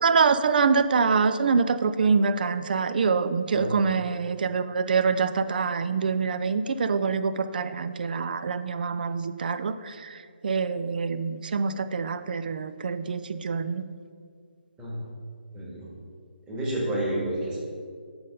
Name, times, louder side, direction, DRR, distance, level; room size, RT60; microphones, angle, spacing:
voice 1, 0.0-13.8, right 5 dB, 55° right, 12 dB, 0.4 m, -25 dB
voice 2, 15.5-15.9 16.5-17.6, right 1 dB, 15° right, -7 dB, 1.6 m, -30 dB
6.8 x 4.3 x 5.2 m, 2.2 s
figure-of-eight pair, 150°, 6 cm